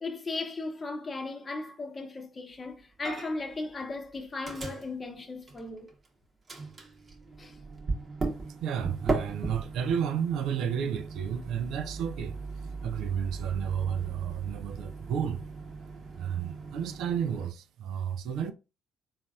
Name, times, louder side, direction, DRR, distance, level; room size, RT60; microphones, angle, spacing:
voice 1, 0.0-5.9 7.4-7.6, left 3 dB, 30° left, 0.8 m, -36 dB
Microwave oven, 3.0-3.5 3.8-6.1 6.5-17.5, right 3 dB, 35° right, 1.0 m, -38 dB
voice 2, 8.6-12.4 12.8-15.4 16.2-18.5, right 8 dB, 65° right, 0.4 m, -31 dB
3.9 x 2.5 x 2.3 m
hypercardioid pair, 50°, 0 cm